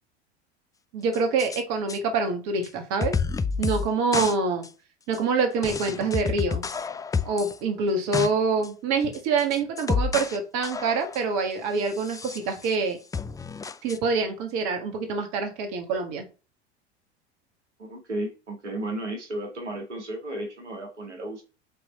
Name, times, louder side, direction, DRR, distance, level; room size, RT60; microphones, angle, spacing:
voice 1, 0.9-3.1 3.6-4.6 5.1-6.6 7.2-13.0 13.8-16.2, right 4 dB, 50° right, 1.6 m, -26 dB
sound 1, 1.1-1.6 1.9-2.0 2.6-2.7 3.0-4.4 4.6-4.7 5.1-5.2 5.6-7.6 7.9-8.3 8.6-8.7 9.1-10.4 10.6-11.3 11.9-12.8 13.1-14.0, left 5 dB, 10° left, 0.4 m, -29 dB
voice 2, 17.8-21.4, right 1 dB, 85° right, 1.9 m, -34 dB
8.4 x 3.3 x 4.3 m
hypercardioid pair, 80°, 34 cm